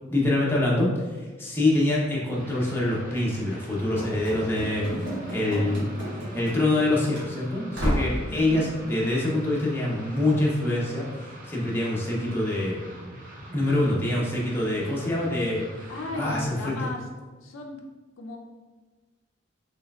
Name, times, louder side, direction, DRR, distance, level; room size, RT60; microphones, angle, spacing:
voice 1, 0.1-12.8 13.5-15.6 16.1-16.7, left 1 dB, 10° left, -5 dB, 0.7 m, -25 dB
sound 1, 2.3-16.5, equal, 40° right, 0.7 m, -44 dB
Run / Slam, 4.0-6.9 7.1-7.3 7.7-8.2, equal, 60° right, 1.4 m, -31 dB
voice 2, 8.3-8.6 15.9-17.0 17.4-17.8 18.2-18.4, left 2 dB, 80° left, 2 dB, 0.5 m, -35 dB
4.3 x 3.3 x 2.3 m, 1.3 s
head